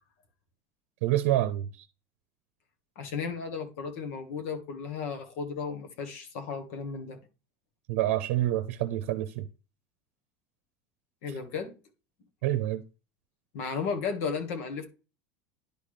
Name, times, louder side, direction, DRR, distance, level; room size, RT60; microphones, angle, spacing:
voice 1, 1.0-1.9 7.9-9.5 12.4-12.8, right 13 dB, 80° right, 0.7 m, -27 dB
voice 2, 2.9-7.2 11.2-11.7 13.5-14.8, left 5 dB, 80° left, 1.6 m, -34 dB
10.5 x 4.1 x 3.2 m
supercardioid pair, 125°, 7 cm